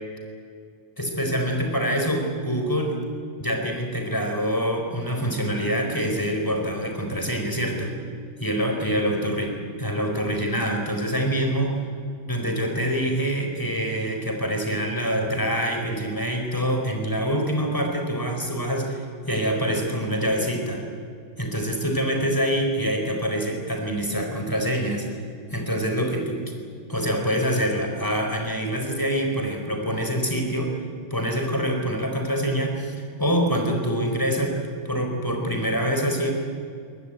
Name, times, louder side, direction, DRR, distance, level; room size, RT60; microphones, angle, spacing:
voice 1, 1.0-3.0 3.4-8.0 8.4-11.8 12.3-20.8 21.4-25.1 25.5-26.4 26.9-30.7 31.1-34.6 34.8-36.3, equal, 10° left, 2 dB, 4.4 m, -25 dB
23.0 x 19.5 x 9.0 m, 2.3 s
omnidirectional pair, 2.3 m